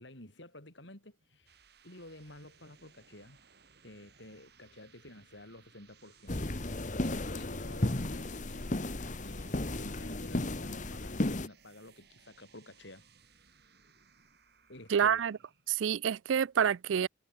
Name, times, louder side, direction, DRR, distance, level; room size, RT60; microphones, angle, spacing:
voice 1, 0.0-1.5 1.8-3.4 3.8-6.5 7.0-8.8 9.2-13.1 14.7-15.2, left 1 dB, 65° left, 6.9 m, -51 dB
sound 1, 1.2-15.7, right 5 dB, 55° right, 8.0 m, -63 dB
sound 2, 6.3-11.5, left 1 dB, 40° left, 1.3 m, -34 dB
voice 2, 14.9-15.4 15.7-17.1, right 8 dB, 80° right, 0.4 m, -28 dB
head